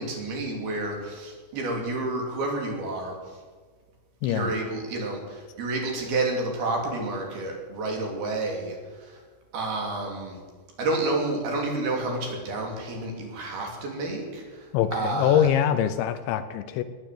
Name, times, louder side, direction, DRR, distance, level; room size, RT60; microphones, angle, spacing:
voice 1, 0.0-3.1 4.3-9.2 9.5-10.4 10.8-15.5, right 2 dB, 55° right, 1 dB, 4.5 m, -30 dB
voice 2, 4.2-4.5 14.7-16.8, left 10 dB, 80° left, 12 dB, 2.9 m, -24 dB
18.5 x 10.0 x 7.7 m, 1.4 s
omnidirectional pair, 5.4 m